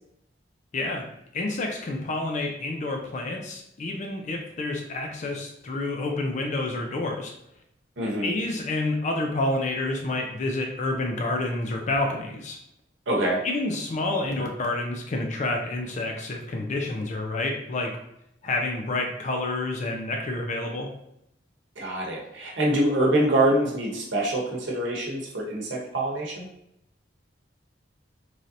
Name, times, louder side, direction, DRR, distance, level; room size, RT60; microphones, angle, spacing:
voice 1, 0.7-7.3 8.2-12.6 13.4-18.0 18.4-20.9, left 2 dB, 40° left, 2 dB, 0.4 m, -29 dB
voice 2, 8.0-8.3 13.1-13.4 21.8-26.5, right 1 dB, 75° right, -3 dB, 0.9 m, -25 dB
3.2 x 2.6 x 2.6 m, 0.77 s
head